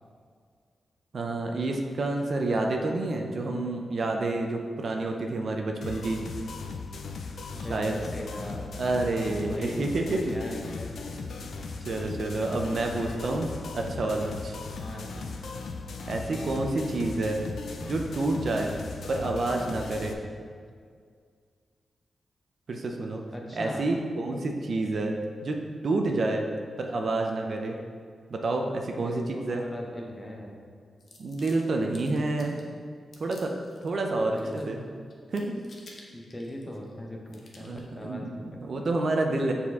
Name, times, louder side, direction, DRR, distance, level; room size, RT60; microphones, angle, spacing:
voice 1, 1.1-6.2 7.7-8.0 8.8-10.2 11.8-14.6 16.1-17.4 17.8-18.7 19.1-20.2 22.7-23.2 23.5-25.1 25.4-26.4 26.8-27.8 28.3-29.6 31.2-32.6 33.2-33.5 33.8-34.4 34.6-34.8 35.3-35.5 37.6-39.5, right 2 dB, 50° right, 2 dB, 0.5 m, -29 dB
sound 1, 5.8-20.1, left 4 dB, 70° left, 0.5 m, -38 dB
voice 2, 7.5-8.7 9.2-10.9 14.8-15.2 16.2-16.6 23.3-23.9 28.9-30.6 34.3-34.7 36.1-38.9, left 1 dB, 10° left, 0 dB, 0.7 m, -40 dB
sound 2, 31.0-32.7 33.1-33.9 34.2-34.9 35.1-36.9 37.3-37.9, left 2 dB, 45° left, 0.8 m, -53 dB
7.0 x 4.2 x 3.6 m, 2.1 s
wide cardioid pair, 140°, 0 cm